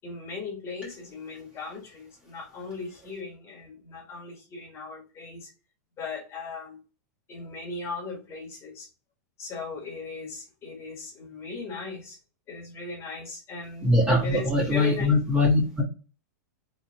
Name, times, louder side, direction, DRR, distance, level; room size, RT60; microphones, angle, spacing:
voice 1, 0.0-5.5 6.0-6.8 7.3-8.9 9.4-12.2 12.5-14.0 14.2-15.1, left 4 dB, 30° left, 0 dB, 1.6 m, -38 dB
voice 2, 13.8-15.8, left 2 dB, 10° right, -4 dB, 1.4 m, -22 dB
3.9 x 3.3 x 2.9 m, 0.33 s
hypercardioid pair, 135°, 9 cm